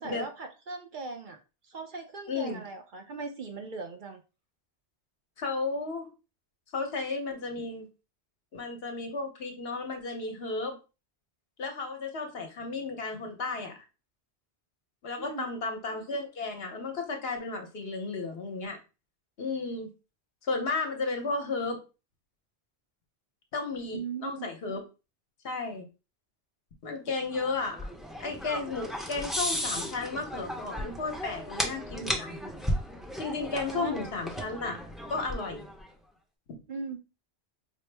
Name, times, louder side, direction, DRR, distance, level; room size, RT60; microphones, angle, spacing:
voice 1, 0.0-1.4 1.7-4.2 15.2-15.5 23.9-24.5 33.7-34.0 36.7-37.0, right 4 dB, 55° right, 4 dB, 0.7 m, -38 dB
voice 2, 2.3-2.6 5.4-6.1 6.7-7.9 8.5-10.8 11.6-13.8 15.0-18.8 19.4-19.9 20.4-21.8 23.5-24.8 25.4-25.9 26.8-27.9 28.2-32.3 33.2-34.8 35.1-35.7, left 3 dB, 65° left, 3 dB, 1.1 m, -33 dB
sound 1, 27.3-35.9, equal, ahead, 0.5 m, -35 dB
4.8 x 2.0 x 3.3 m, 0.31 s
omnidirectional pair, 1.1 m